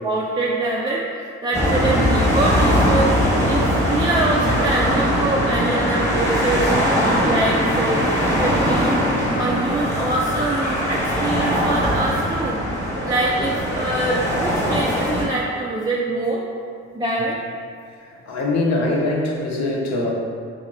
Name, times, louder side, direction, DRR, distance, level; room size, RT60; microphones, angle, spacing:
voice 1, 0.0-6.7 7.2-9.0 9.3-12.6 13.0-16.4 16.9-17.4, right 2 dB, 15° right, -5 dB, 0.3 m, -24 dB
sound 1, 1.5-15.2, equal, 10° left, 1.1 m, -20 dB
voice 2, 17.9-20.1, left 2 dB, 60° left, -2 dB, 0.8 m, -23 dB
3.0 x 2.9 x 3.9 m, 2.2 s
cardioid pair, 90°, 30 cm